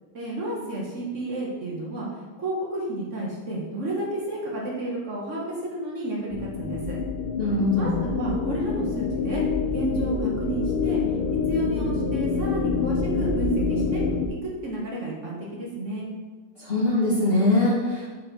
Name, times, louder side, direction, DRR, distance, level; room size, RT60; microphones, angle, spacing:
voice 1, 0.1-2.1 2.4-7.0 7.8-9.4 9.7-11.0 11.5-14.0 14.6-16.1, right 2 dB, 55° right, -3 dB, 0.9 m, -31 dB
sound 1, 6.3-14.3, left 5 dB, 90° left, 1.5 m, -26 dB
voice 2, 7.4-8.0 16.6-18.1, left 2 dB, 75° left, -6 dB, 0.5 m, -22 dB
5.3 x 4.1 x 4.5 m, 1.3 s
omnidirectional pair, 2.4 m